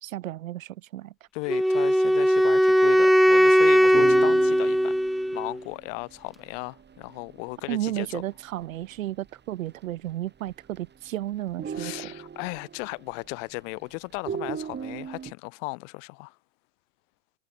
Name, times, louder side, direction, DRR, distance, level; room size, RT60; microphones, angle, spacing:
voice 1, 0.0-1.1 7.7-11.9, right 14 dB, 85° right, 2.5 m, -33 dB
voice 2, 1.3-8.2 11.7-16.4, left 32 dB, 65° left, 7.1 m, -36 dB
Wind instrument woodwind instrument, 1.5-5.6, equal, ahead, 0.7 m, -19 dB
sound 1, 3.9-9.0 9.3-9.4 9.7-10.1 10.4-11.1 11.4-13.7 14.2-15.3, right 7 dB, 25° right, 5.7 m, -38 dB
hypercardioid pair, 100°, 39 cm